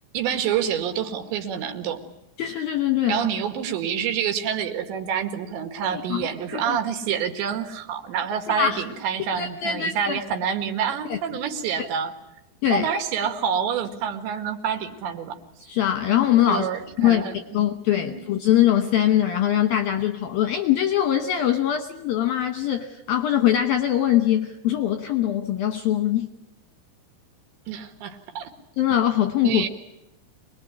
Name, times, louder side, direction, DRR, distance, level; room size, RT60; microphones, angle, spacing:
voice 1, 0.1-2.0 3.1-12.1 12.7-15.4 16.5-17.3 18.0-18.2 27.7-28.5 29.4-29.7, right 8 dB, 70° right, 7 dB, 4.0 m, -27 dB
voice 2, 2.4-3.2 5.9-6.3 6.5-6.8 8.5-8.8 9.3-10.2 11.1-11.2 11.8-11.9 12.6-12.9 15.6-16.7 17.0-17.2 17.5-26.3 28.8-29.7, left 11 dB, 75° left, 7 dB, 2.3 m, -22 dB
25.5 x 21.0 x 9.9 m, 0.87 s
omnidirectional pair, 5.7 m